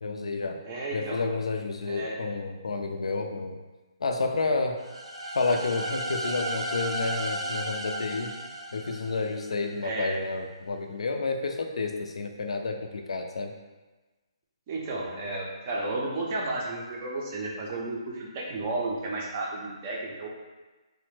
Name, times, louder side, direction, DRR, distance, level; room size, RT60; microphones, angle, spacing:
voice 1, 0.0-0.6 0.9-3.6 4.0-4.8 5.3-8.3 8.7-13.5, left 3 dB, 90° left, 4 dB, 0.4 m, -30 dB
voice 2, 0.6-1.2 1.9-2.2 9.8-10.1 14.7-20.3, right 2 dB, 25° right, -2 dB, 0.4 m, -32 dB
sound 1, 4.8-9.6, right 1 dB, 80° right, 0.5 m, -34 dB
3.1 x 2.1 x 3.1 m, 1.2 s
hypercardioid pair, 170°, 3 cm